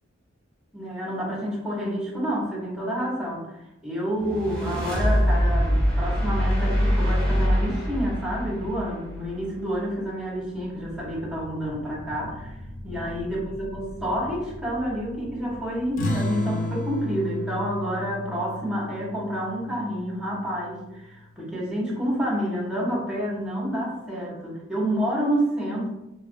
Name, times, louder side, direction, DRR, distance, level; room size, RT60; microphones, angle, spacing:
voice 1, 0.7-12.6 12.8-25.9, equal, 5° right, -6 dB, 0.8 m, -29 dB
sound 1, 4.2-9.5, equal, 25° left, 1.2 m, -23 dB
sound 2, 10.4-16.9, equal, 70° left, 1.0 m, -42 dB
sound 3, 16.0-21.0, left 1 dB, 40° left, 0.4 m, -32 dB
2.9 x 2.4 x 2.5 m, 0.91 s
head